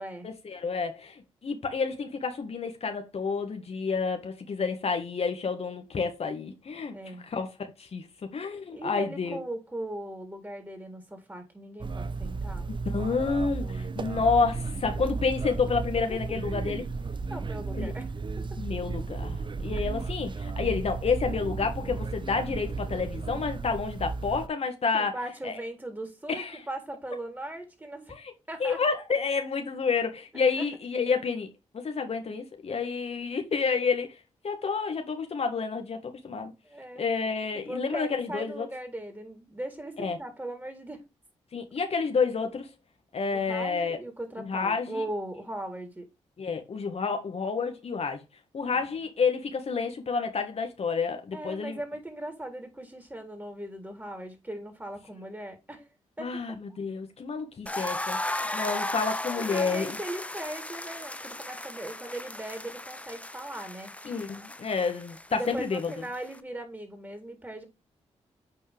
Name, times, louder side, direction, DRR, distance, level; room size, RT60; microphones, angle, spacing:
voice 1, 0.2-6.9 7.3-7.5 7.8-8.1 8.3-9.4 12.7-16.8 17.7-17.9 18.6-25.1 25.4-25.6 26.3-26.6 28.1-28.3 28.6-31.5 31.7-34.1 34.4-36.5 37.0-38.7 40.0-40.2 41.5-42.7 43.1-44.0 44.4-45.0 46.4-48.2 48.5-51.8 56.2-59.9 64.0-65.9, left 5 dB, 60° left, 1.7 m, -29 dB
voice 2, 6.9-7.3 8.5-12.7 16.1-16.4 17.3-18.1 18.4-18.6 24.9-28.1 28.5-28.8 30.6-30.7 36.6-37.0 37.5-41.0 43.3-46.1 48.7-48.9 51.3-55.9 56.2-56.8 59.4-63.9 65.3-67.6, right 1 dB, 15° right, 3.8 m, -39 dB
sound 1, 11.8-24.5, right 4 dB, 40° right, 0.7 m, -34 dB
sound 2, 57.7-66.4, left 1 dB, 10° left, 0.9 m, -36 dB
8.8 x 4.6 x 3.5 m
supercardioid pair, 50°, 12 cm